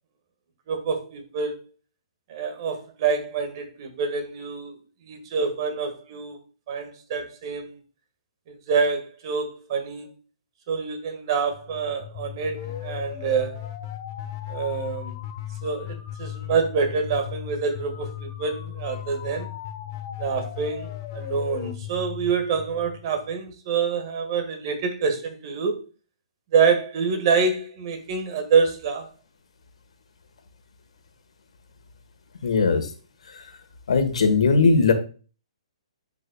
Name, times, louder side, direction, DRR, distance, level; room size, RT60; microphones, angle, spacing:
voice 1, 0.7-1.6 2.3-4.8 5.0-6.4 6.7-7.8 8.7-10.1 10.7-13.6 14.5-15.2 15.6-19.5 20.2-25.8 26.5-29.1, right 5 dB, 45° right, 1.7 m, -26 dB
sound 1, 11.5-23.3, left 11 dB, 40° left, 1.1 m, -36 dB
voice 2, 32.4-32.9 33.3-33.4 33.9-34.9, left 4 dB, 75° left, 1.5 m, -19 dB
9.6 x 5.4 x 2.3 m
hypercardioid pair, 140°, 3 cm